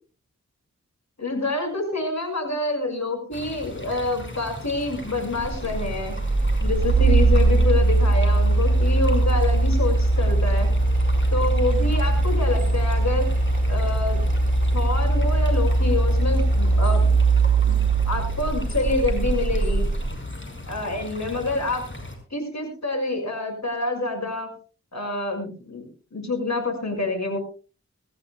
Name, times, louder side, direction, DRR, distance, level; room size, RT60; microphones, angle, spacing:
voice 1, 1.2-6.1 6.6-10.7 11.3-13.3 13.7-14.2 14.7-17.1 17.6-17.8 18.1-19.8 20.7-21.8 22.3-24.5 24.9-25.9 26.1-27.4, left 2 dB, 70° left, 4 dB, 6.1 m, -27 dB
sound 1, 3.3-22.2, left 2 dB, 40° left, 5.3 m, -38 dB
sound 2, 5.4-20.1, right 2 dB, 30° right, 4.1 m, -20 dB
24.0 x 15.0 x 2.3 m, 0.35 s
wide cardioid pair, 50°, 29 cm